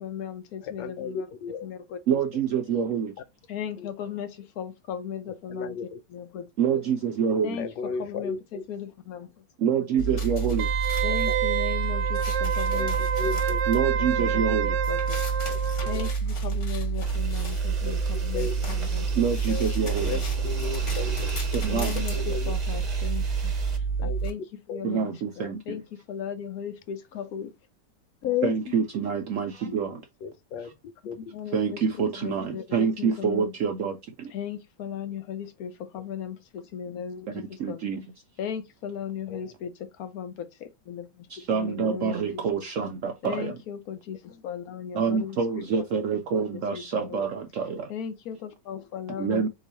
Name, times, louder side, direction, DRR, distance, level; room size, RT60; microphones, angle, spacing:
voice 1, 0.0-1.3 1.6-2.0 3.5-5.8 6.1-6.5 7.4-7.7 8.0-9.7 10.1-10.2 11.0-13.4 14.0-14.4 14.9-15.2 15.9-19.2 19.5-19.9 21.7-23.5 24.0-24.4 24.7-27.5 28.2-28.8 31.0-31.8 32.2-33.5 34.3-37.8 38.4-42.4 43.2-45.4 46.3-47.2 47.9-49.5, left 8 dB, 70° left, 1.0 m, -36 dB
voice 2, 0.6-1.7 3.8-3.9 5.5-6.0 7.6-8.6 11.3-11.4 12.7-13.6 15.5-15.6 15.9-16.1 17.8-18.0 18.3-18.6 20.0-21.3 22.1-22.6 24.0-24.2 24.7-24.8 29.7-29.8 30.2-30.7 31.0-31.2 39.3-39.5, left 5 dB, 85° left, 1.3 m, -35 dB
voice 3, 2.1-3.1 6.6-7.6 9.6-10.6 13.7-14.7 19.2-20.1 21.6-21.9 24.8-25.6 28.4-29.9 31.5-33.9 37.6-38.0 41.5-43.5 45.0-47.7 49.2-49.5, right 6 dB, 70° right, 0.7 m, -26 dB
sound 1, 10.0-24.3, right 5 dB, 45° left, 1.4 m, -28 dB
Wind instrument woodwind instrument, 10.6-16.1 16.5-16.6, right 8 dB, 85° right, 1.3 m, -28 dB
sound 2, 17.1-23.8, right 5 dB, 35° right, 0.7 m, -37 dB
3.9 x 3.0 x 4.1 m
omnidirectional pair, 1.9 m